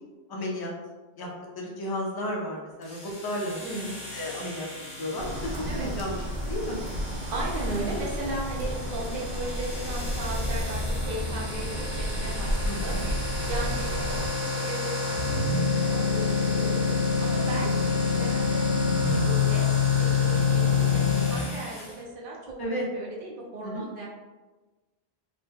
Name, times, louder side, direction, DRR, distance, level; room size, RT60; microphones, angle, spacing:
voice 1, 0.3-0.7 1.2-1.3 1.5-3.6 4.1-4.7 5.0-6.8 12.6-13.1 22.6-22.9 23.6-23.9, left 1 dB, 30° left, -2 dB, 0.5 m, -33 dB
sound 1, 2.8-21.9, left 5 dB, 65° left, 1.2 m, -28 dB
voice 2, 3.6-4.0 5.6-5.9 7.3-12.9 13.5-16.8 17.2-18.7 19.0-19.7 20.0-24.1, right 2 dB, 60° right, -4 dB, 0.8 m, -36 dB
sound 2, 5.2-14.3, equal, 90° right, 0.9 m, -32 dB
3.0 x 2.1 x 3.3 m, 1.2 s
omnidirectional pair, 1.1 m